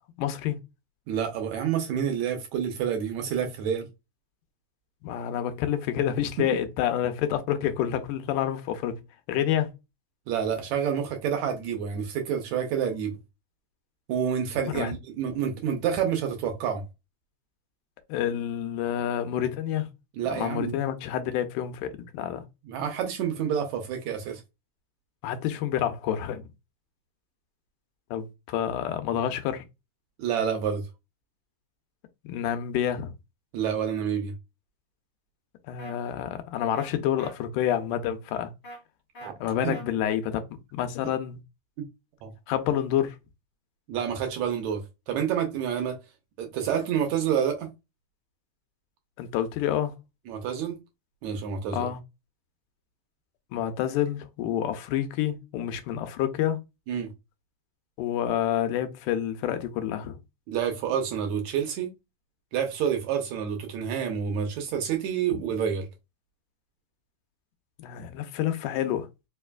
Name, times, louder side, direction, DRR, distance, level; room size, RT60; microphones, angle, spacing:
voice 1, 0.2-0.6 5.0-9.0 9.3-9.7 14.7-14.9 18.1-19.9 20.3-22.4 25.2-26.5 28.1-29.7 32.2-33.1 35.7-38.5 39.4-41.4 42.5-43.2 49.2-50.0 51.7-52.0 53.5-56.6 58.0-60.2 67.8-69.1, left 10 dB, 85° left, 2.2 m, -28 dB
voice 2, 1.1-3.9 10.3-13.1 14.1-16.8 20.2-20.7 22.7-24.4 30.2-30.8 33.5-34.3 39.2-39.3 39.6-39.7 42.2-42.3 43.9-44.8 45.1-46.0 46.4-47.7 50.3-50.8 51.2-51.9 56.9-57.1 60.5-61.9 62.5-65.9, right 8 dB, 75° right, 1.8 m, -28 dB
sound 1, 35.8-35.9 36.7-36.9 37.2-37.3 38.6-38.8 39.1-39.3 39.7-39.8, right 1 dB, 45° left, 0.8 m, -42 dB
5.0 x 2.4 x 2.2 m
omnidirectional pair, 3.6 m